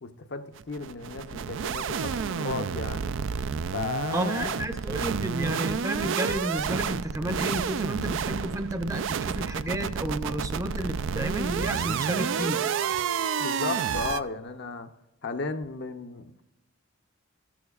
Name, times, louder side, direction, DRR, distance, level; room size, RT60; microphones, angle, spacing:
voice 1, 0.0-3.1 3.7-4.6 13.4-14.9 15.2-16.4, left 4 dB, 55° left, 7 dB, 0.7 m, -35 dB
sound 1, 0.6-14.2, right 6 dB, 65° right, 0.4 m, -30 dB
voice 2, 4.1-12.6, right 1 dB, 15° right, 7 dB, 0.6 m, -31 dB
13.5 x 13.5 x 2.4 m, 0.94 s
head